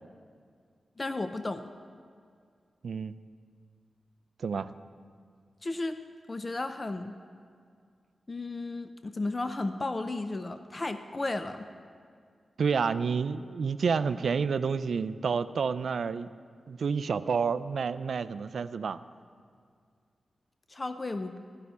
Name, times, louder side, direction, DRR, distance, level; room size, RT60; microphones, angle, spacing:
voice 1, 1.0-1.6 5.6-6.0 6.3-7.1 8.3-11.7 20.7-21.4, left 2 dB, 25° left, 8 dB, 0.4 m, -34 dB
voice 2, 2.8-3.2 4.4-4.7 12.6-16.3 16.7-19.0, right 5 dB, 70° right, 13 dB, 0.3 m, -29 dB
13.5 x 5.7 x 9.4 m, 2.2 s
wide cardioid pair, 150°, 0 cm